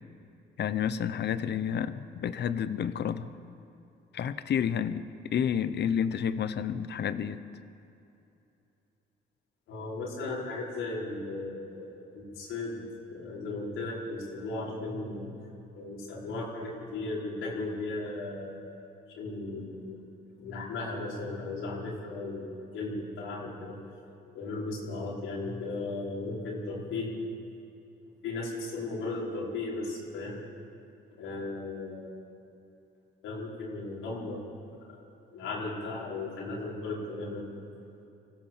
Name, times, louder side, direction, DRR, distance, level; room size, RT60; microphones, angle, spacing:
voice 1, 0.6-3.3 4.1-7.4, left 8 dB, 60° left, 13 dB, 1.0 m, -30 dB
voice 2, 9.7-12.8 13.1-15.3 15.7-18.7 19.2-20.0 20.4-23.8 24.3-27.2 28.2-30.4 31.1-32.1 33.2-34.5 34.7-35.0 35.3-37.5, left 2 dB, 90° left, -4 dB, 5.2 m, -36 dB
24.5 x 16.0 x 7.5 m, 2.8 s
cardioid pair, 90°, 20 cm